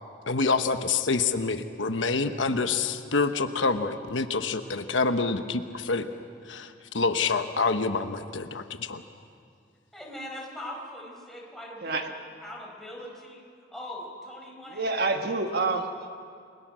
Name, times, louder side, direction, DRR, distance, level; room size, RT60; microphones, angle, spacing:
voice 1, 0.3-6.0 6.5-9.0, left 4 dB, 85° left, 8 dB, 1.1 m, -27 dB
voice 2, 9.9-12.0 12.4-13.4 13.7-15.2, left 1 dB, ahead, -2 dB, 4.9 m, -41 dB
voice 3, 11.8-12.1 14.7-16.1, right 3 dB, 55° right, 5 dB, 1.4 m, -28 dB
29.5 x 22.0 x 6.3 m, 2.3 s
head